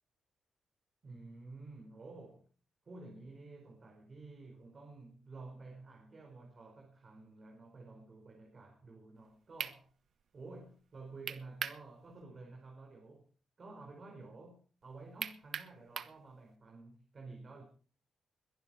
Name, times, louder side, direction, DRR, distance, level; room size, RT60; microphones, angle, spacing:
voice 1, 1.0-2.5 2.8-9.9 10.3-13.3 13.6-17.6, right 3 dB, 35° right, 4.6 m, -51 dB
sound 1, 9.2-9.3 9.6-9.8 11.3-11.8 12.2-12.3 15.2-16.2, right 7 dB, 60° right, 1.1 m, -39 dB
22.0 x 11.0 x 4.3 m
cardioid pair, 120°, 0 cm